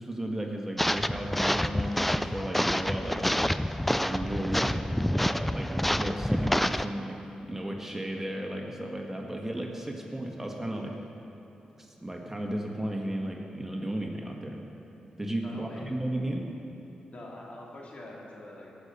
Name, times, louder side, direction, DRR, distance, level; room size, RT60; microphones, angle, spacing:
voice 1, 0.0-3.2 4.0-4.7 5.1-11.0 11.8-14.6 15.2-16.4, right 1 dB, 15° right, 1 dB, 1.6 m, -34 dB
sound 1, 0.8-6.9, equal, 5° left, 0.4 m, -28 dB
voice 2, 15.4-15.9 17.1-18.7, left 1 dB, 55° left, -3 dB, 2.8 m, -45 dB
17.5 x 6.8 x 5.5 m, 2.9 s
supercardioid pair, 50°, 3 cm